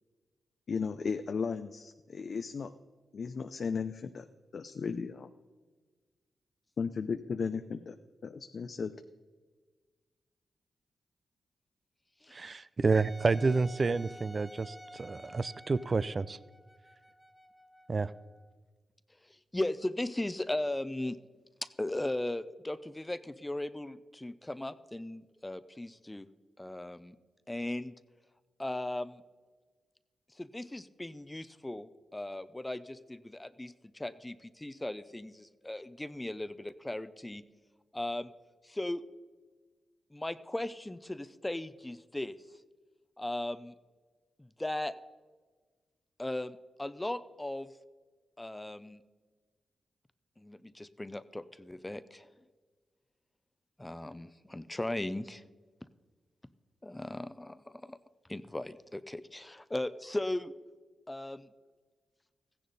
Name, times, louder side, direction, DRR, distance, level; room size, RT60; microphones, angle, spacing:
voice 1, 0.7-2.7 3.1-4.3 4.5-5.3 6.8-8.0 8.2-8.9, left 5 dB, 65° left, 9 dB, 0.5 m, -35 dB
voice 2, 12.3-16.4 17.9-18.1, right 4 dB, 45° right, 17 dB, 0.4 m, -29 dB
Wind instrument woodwind instrument, 12.9-18.5, equal, 5° right, 1.0 m, -52 dB
voice 3, 19.2-21.2 21.8-26.3 26.6-27.2 27.5-27.9 28.6-29.2 30.3-37.4 37.9-38.3 38.6-39.0 40.1-42.4 43.2-43.7 44.4-44.9 46.2-47.7 48.4-49.0 50.4-52.3 53.8-55.4 56.8-58.0 58.3-60.5 61.1-61.5, left 1 dB, 15° left, 14 dB, 0.6 m, -37 dB
15.0 x 10.0 x 4.1 m, 1.4 s
cardioid pair, 55°, 0 cm